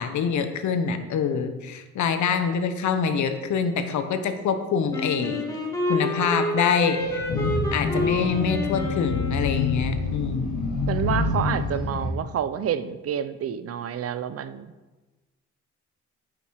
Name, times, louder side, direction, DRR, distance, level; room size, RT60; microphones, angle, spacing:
voice 1, 0.0-5.4 5.9-7.2 7.7-10.6, left 6 dB, 70° left, 8 dB, 1.0 m, -25 dB
Wind instrument woodwind instrument, 4.9-10.0, left 2 dB, 10° left, 1.9 m, -29 dB
Motorbike driving away, 7.0-12.1, left 3 dB, 85° left, 3.4 m, -27 dB
voice 2, 10.9-14.7, right 8 dB, 50° right, 12 dB, 0.6 m, -28 dB
9.4 x 5.9 x 4.8 m, 1.2 s
cardioid pair, 90°, 30 cm